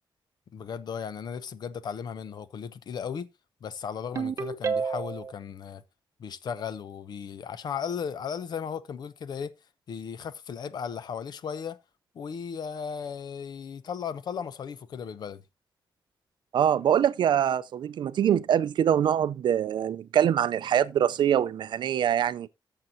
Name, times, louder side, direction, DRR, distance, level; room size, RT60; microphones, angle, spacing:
voice 1, 0.5-3.3 3.6-5.8 6.2-9.5 9.9-11.8 12.1-15.4, left 7 dB, 55° left, 0.7 m, -36 dB
Ringtone, 4.2-5.3, right 5 dB, 35° right, 0.8 m, -29 dB
voice 2, 16.5-22.5, right 9 dB, 65° right, 0.4 m, -24 dB
13.5 x 6.7 x 2.7 m
wide cardioid pair, 180°, 8 cm